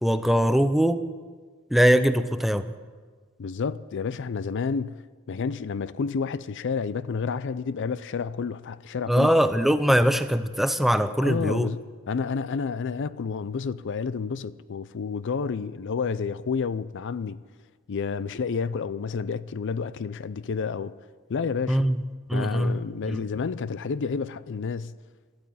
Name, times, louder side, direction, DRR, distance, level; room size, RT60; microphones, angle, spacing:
voice 1, 0.0-1.0 1.7-2.7 9.1-11.7 21.7-21.9 22.3-22.8 23.1-23.2, equal, ahead, 0.6 m, -21 dB
voice 2, 3.4-5.0 5.3-9.3 11.1-11.8 12.1-17.4 17.9-20.9 21.3-21.9 22.3-24.9, left 5 dB, 55° left, 0.4 m, -30 dB
13.0 x 12.5 x 8.5 m
head